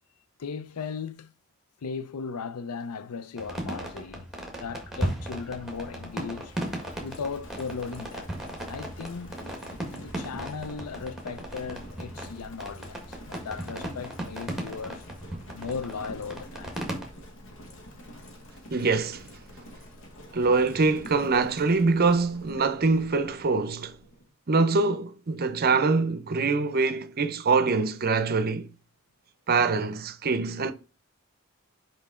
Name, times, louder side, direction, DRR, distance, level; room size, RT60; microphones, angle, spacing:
voice 1, 0.4-1.3 1.8-4.3 4.6-6.5 7.0-8.3 8.6-9.4 9.9-15.0 15.5-16.7, left 5 dB, 85° left, 0.5 m, -37 dB
sound 1, 3.4-17.1, right 1 dB, ahead, 1.7 m, -37 dB
Livestock farm animals working animals, 4.6-24.3, equal, 60° left, 1.4 m, -47 dB
voice 2, 18.7-19.3 20.3-24.0 24.5-28.7 29.5-30.7, right 4 dB, 45° right, 0.6 m, -24 dB
5.6 x 5.1 x 3.7 m
head